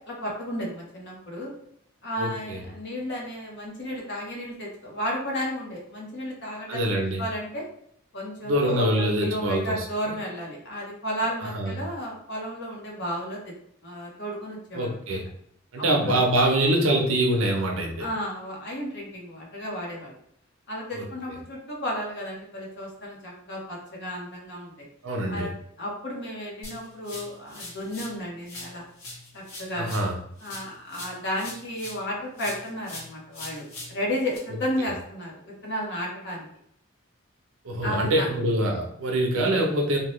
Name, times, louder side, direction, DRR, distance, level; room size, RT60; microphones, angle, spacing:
voice 1, 0.0-1.5 2.0-6.9 7.2-7.6 8.1-13.5 13.8-14.9 15.8-16.1 18.0-20.1 20.7-24.9 25.3-25.5 25.8-28.8 29.3-30.0 30.4-36.5 37.8-38.3, equal, 55° left, -3 dB, 0.9 m, -33 dB
voice 2, 2.2-2.6 6.7-7.2 8.4-9.7 11.4-11.8 14.7-15.2 15.7-18.1 20.9-21.1 25.0-25.5 29.7-30.2 37.6-40.0, right 1 dB, 75° right, 1 dB, 0.7 m, -24 dB
sound 1, 26.6-28.2 28.4-32.1 32.4-34.4, left 2 dB, 85° left, 1.2 m, -42 dB
2.8 x 2.2 x 3.0 m, 0.70 s
head